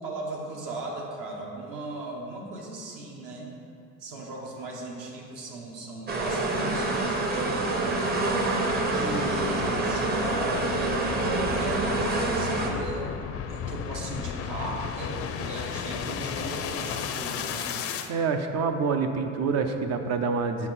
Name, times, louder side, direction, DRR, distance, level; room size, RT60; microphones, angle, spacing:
voice 1, 0.0-3.5 4.0-8.0 8.9-11.1 11.5-17.8, right 2 dB, 65° right, -1 dB, 1.5 m, -38 dB
sound 1, 6.1-12.7, right 2 dB, 30° right, 0.8 m, -26 dB
sound 2, 6.8-18.1, left 7 dB, 45° left, 0.5 m, -35 dB
voice 2, 18.1-20.7, right 5 dB, 50° right, 6 dB, 0.6 m, -27 dB
7.2 x 5.5 x 4.2 m, 2.5 s
cardioid pair, 120°, 33 cm